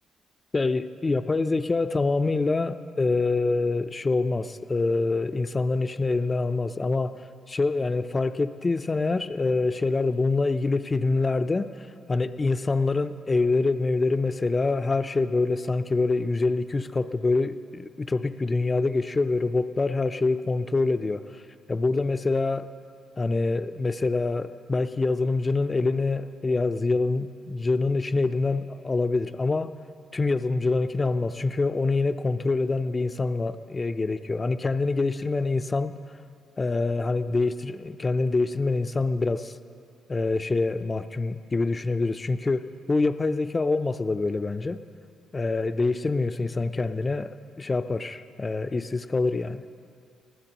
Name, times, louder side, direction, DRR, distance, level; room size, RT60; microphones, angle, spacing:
voice 1, 0.5-7.1 7.5-21.4 21.7-22.7 23.2-29.7 30.1-35.9 36.6-39.5 40.1-44.8 45.3-49.6, left 3 dB, 25° left, 10 dB, 0.5 m, -25 dB
25.0 x 15.5 x 2.9 m, 2.5 s
cardioid pair, 90°, 0 cm